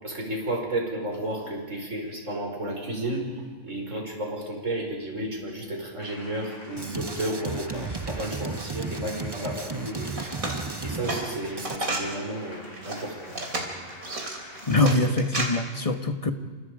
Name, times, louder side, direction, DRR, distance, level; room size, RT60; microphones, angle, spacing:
voice 1, 0.0-10.4 10.8-13.4, right 1 dB, 60° right, 0 dB, 5.6 m, -32 dB
sound 1, 6.0-14.8, left 1 dB, 85° left, 6.7 m, -46 dB
Drum kit, 6.8-11.8, right 3 dB, 20° right, 0.7 m, -34 dB
sound 2, 10.1-12.1 12.6-15.5, right 2 dB, 80° right, 3.9 m, -32 dB
voice 2, 14.7-16.3, left 2 dB, 25° left, 7 dB, 1.4 m, -23 dB
29.0 x 27.0 x 5.0 m, 1.4 s
omnidirectional pair, 1.4 m